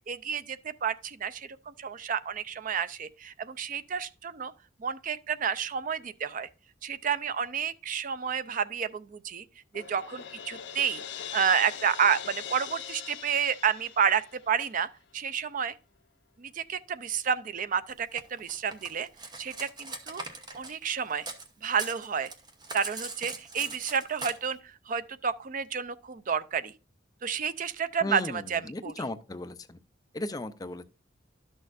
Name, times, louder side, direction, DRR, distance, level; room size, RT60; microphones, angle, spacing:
voice 1, 0.1-4.5 4.8-6.5 6.8-9.4 9.7-11.0 11.3-14.9 15.1-15.7 16.4-19.1 19.4-20.2 20.5-21.3 21.6-22.3 22.7-26.7 27.2-28.9, right 7 dB, 45° right, 0.5 m, -30 dB
Crash cymbal, 9.7-14.7, left 8 dB, 65° left, 0.6 m, -41 dB
Cutlery silverware, 18.2-21.5 21.7-24.3, right 3 dB, 25° right, 0.9 m, -40 dB
voice 2, 28.0-29.8 30.1-30.8, left 1 dB, 20° left, 0.5 m, -36 dB
12.0 x 6.3 x 2.5 m
head